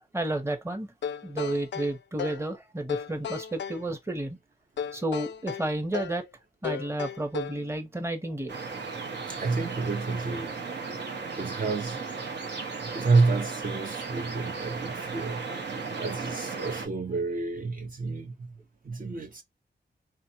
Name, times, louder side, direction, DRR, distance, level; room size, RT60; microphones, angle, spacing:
voice 1, 0.1-0.9 1.2-4.4 4.9-6.3 6.6-8.5, right 1 dB, 15° right, 0.9 m, -31 dB
sound 1, 1.0-2.5 2.9-3.8 4.8-6.2 6.6-7.7, left 8 dB, 80° left, 0.4 m, -35 dB
sound 2, 8.5-16.9, right 4 dB, 75° right, 1.1 m, -35 dB
voice 2, 9.3-10.6 11.4-12.0 12.8-15.4 16.0-18.5 18.8-19.4, right 3 dB, 50° right, 0.9 m, -29 dB
4.2 x 2.4 x 2.8 m
cardioid pair, 75°, 18 cm